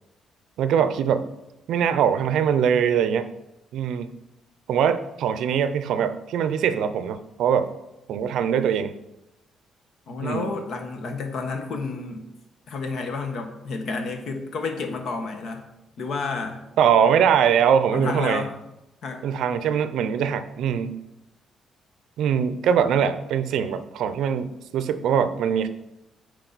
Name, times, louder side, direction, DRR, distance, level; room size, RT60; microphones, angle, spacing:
voice 1, 0.6-1.2 1.7-3.3 3.7-4.1 4.7-7.7 8.1-8.9 10.2-10.5 16.8-18.4 19.2-21.0 22.2-25.7, right 8 dB, 80° right, 12 dB, 0.5 m, -22 dB
voice 2, 10.1-12.2 12.7-15.6 16.0-16.6 17.9-18.5 19.0-19.2, left 4 dB, 70° left, 5 dB, 1.2 m, -30 dB
8.9 x 4.7 x 4.1 m, 0.92 s
cardioid pair, 90°, 0 cm